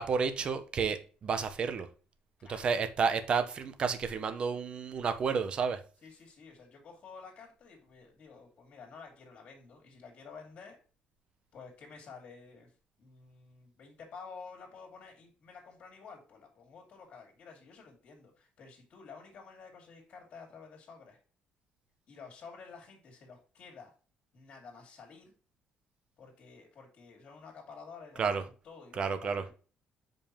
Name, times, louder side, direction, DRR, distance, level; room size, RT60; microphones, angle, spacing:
voice 1, 0.0-1.9 2.5-5.8 28.2-28.4 29.0-29.4, right 5 dB, 35° right, 0.8 m, -31 dB
voice 2, 2.4-2.7 6.0-10.8 11.5-12.7 13.0-21.2 22.1-23.9 24.3-25.3 26.2-29.5, left 5 dB, 45° left, 2.2 m, -51 dB
6.8 x 5.3 x 2.9 m
cardioid pair, 160°, 3 cm